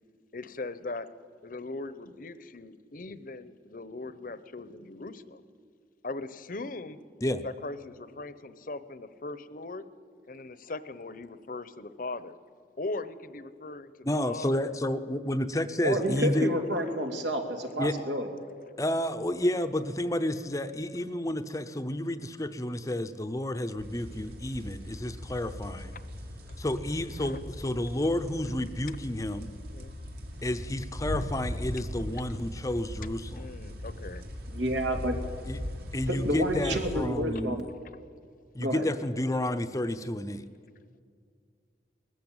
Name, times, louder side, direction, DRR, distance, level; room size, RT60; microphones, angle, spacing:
voice 1, 0.3-1.1 1.4-5.4 6.0-7.0 7.4-9.8 10.3-12.3 12.8-13.9 14.3-14.7 27.2-27.4 29.7-29.9 33.4-34.2, left 2 dB, 50° left, 14 dB, 0.9 m, -39 dB
voice 2, 14.0-16.6 17.8-17.9 18.8-25.9 26.6-29.5 30.4-33.5 35.5-35.6 35.9-37.7 38.5-40.5, left 1 dB, 20° left, 9 dB, 0.7 m, -30 dB
voice 3, 15.8-18.3 34.5-35.2 36.1-37.7 38.6-38.9, right 1 dB, 85° right, 4 dB, 2.7 m, -29 dB
sound 1, 23.8-37.1, equal, 60° right, 2.3 m, -39 dB
20.0 x 14.5 x 8.9 m, 2.1 s
head